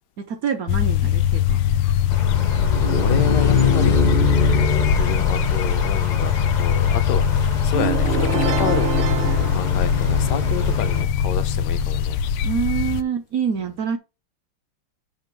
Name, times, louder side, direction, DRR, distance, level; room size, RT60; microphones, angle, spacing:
voice 1, 0.2-1.6 12.4-14.0, right 7 dB, 65° right, 0.8 m, -26 dB
sound 1, 0.7-13.0, left 9 dB, 80° left, 1.4 m, -21 dB
sound 2, 2.1-11.0, left 4 dB, 40° left, 0.6 m, -24 dB
voice 2, 3.0-12.2, left 9 dB, 65° left, 1.1 m, -30 dB
sound 3, 7.7-10.6, right 10 dB, 85° right, 1.7 m, -27 dB
7.9 x 2.9 x 5.9 m
omnidirectional pair, 2.3 m